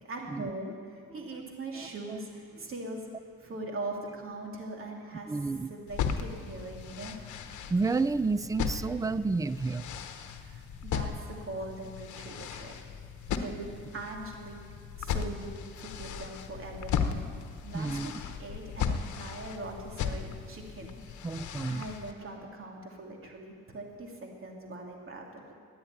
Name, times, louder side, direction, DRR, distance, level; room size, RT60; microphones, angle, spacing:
voice 1, 0.0-3.1 3.4-5.4 5.7-7.2 10.4-12.7 13.3-13.7 13.9-14.6 15.0-17.2 17.6-21.3 21.7-25.5, right 2 dB, 45° right, 0 dB, 2.9 m, -41 dB
voice 2, 1.1-1.4 1.8-2.2 5.3-5.7 7.7-9.9 17.7-18.2 21.2-21.9, right 3 dB, 10° right, 16 dB, 0.3 m, -31 dB
sound 1, 5.9-22.1, left 7 dB, 75° left, 1.1 m, -37 dB
13.5 x 9.7 x 9.2 m, 2.1 s
cardioid pair, 90°, 30 cm